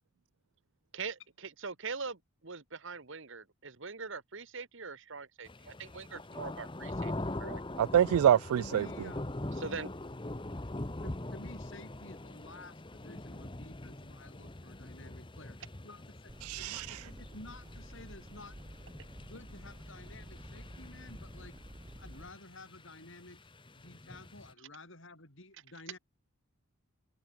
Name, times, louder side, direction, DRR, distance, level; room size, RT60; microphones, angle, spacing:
voice 1, 0.9-7.1 7.4-7.6 9.6-9.9, right 4 dB, 55° right, 1.4 m, -42 dB
sound 1, 5.4-24.5, left 1 dB, 20° left, 1.0 m, -43 dB
voice 2, 7.8-8.9 16.4-17.0, right 9 dB, 75° right, 0.3 m, -26 dB
voice 3, 8.6-9.4 11.0-15.6 15.8-18.6 19.2-21.6 22.0-23.4 23.8-26.0, left 2 dB, 55° left, 7.1 m, -52 dB
sound 2, 16.3-22.3, right 1 dB, 20° right, 1.6 m, -51 dB
head